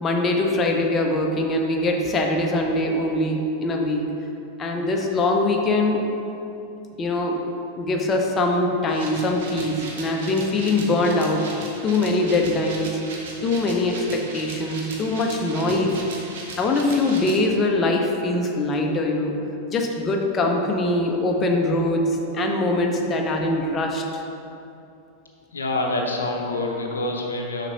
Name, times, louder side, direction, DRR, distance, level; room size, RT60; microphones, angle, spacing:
voice 1, 0.0-4.2 4.6-6.1 7.0-7.4 7.8-11.5 11.8-13.0 13.4-16.0 16.6-24.2, left 2 dB, 25° left, 1 dB, 0.7 m, -22 dB
sound 1, 8.9-17.4, right 3 dB, 55° right, 1.0 m, -38 dB
voice 2, 25.5-27.7, left 2 dB, 75° left, 1 dB, 0.7 m, -26 dB
6.7 x 5.9 x 2.9 m, 2.8 s
figure-of-eight pair, 90°, 0 cm